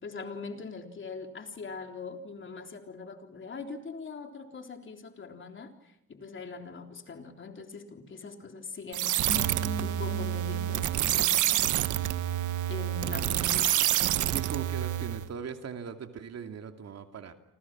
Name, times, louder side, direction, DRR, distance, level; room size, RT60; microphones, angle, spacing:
voice 1, 0.0-9.1 9.8-11.5 12.7-13.8, left 4 dB, 40° left, 5 dB, 3.6 m, -42 dB
sound 1, 8.9-15.3, right 13 dB, 80° right, 1.3 m, -28 dB
sound 2, 9.3-12.6 12.8-12.9, left 3 dB, 20° left, 2.7 m, -42 dB
voice 2, 14.3-17.3, right 7 dB, 60° right, 6 dB, 2.7 m, -39 dB
29.0 x 26.0 x 6.1 m, 0.76 s
cardioid pair, 90°, 30 cm